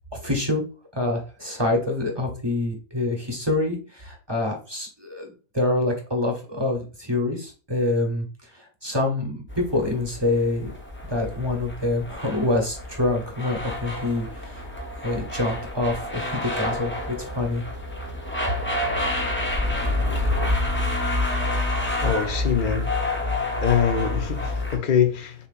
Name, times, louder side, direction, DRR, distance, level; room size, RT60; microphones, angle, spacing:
voice 1, 0.1-0.6 0.9-8.3 8.5-10.7 11.1-14.7 15.0-17.6, left 2 dB, 20° right, 0.9 m, -26 dB
sound 1, 9.5-24.8, left 2 dB, 10° left, 0.7 m, -28 dB
voice 2, 22.0-22.9 23.5-25.3, left 8 dB, 45° left, 0.8 m, -23 dB
6.9 x 2.9 x 2.5 m
omnidirectional pair, 1.5 m